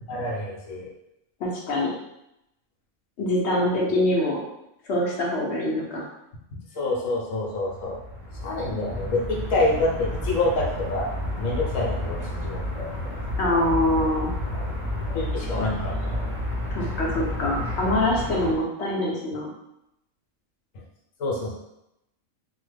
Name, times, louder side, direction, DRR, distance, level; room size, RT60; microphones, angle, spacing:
voice 1, 0.1-0.9 6.7-8.0 8.4-11.1 11.4-12.2 12.4-12.6 15.1-16.2 21.2-21.5, left 2 dB, 75° left, -2 dB, 1.1 m, -26 dB
voice 2, 1.4-1.9 3.2-4.4 4.9-6.1 13.4-14.3 16.7-19.5, left 1 dB, 60° left, -2 dB, 0.9 m, -24 dB
sound 1, 7.6-18.5, left 1 dB, 30° right, 0.7 m, -31 dB
2.9 x 2.1 x 3.3 m, 0.84 s
omnidirectional pair, 1.4 m